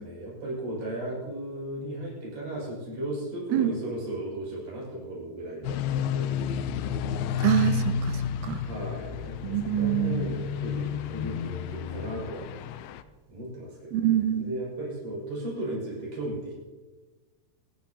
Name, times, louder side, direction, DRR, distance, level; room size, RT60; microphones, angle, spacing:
voice 1, 0.0-6.3 8.6-12.5 13.3-16.5, right 1 dB, 40° right, -5 dB, 6.9 m, -36 dB
sound 1, 5.6-13.0, left 7 dB, 85° left, 2.3 m, -31 dB
voice 2, 7.4-8.6 9.4-10.3 13.9-14.5, right 11 dB, 80° right, 9 dB, 2.5 m, -26 dB
27.0 x 10.5 x 2.8 m, 1.3 s
omnidirectional pair, 4.8 m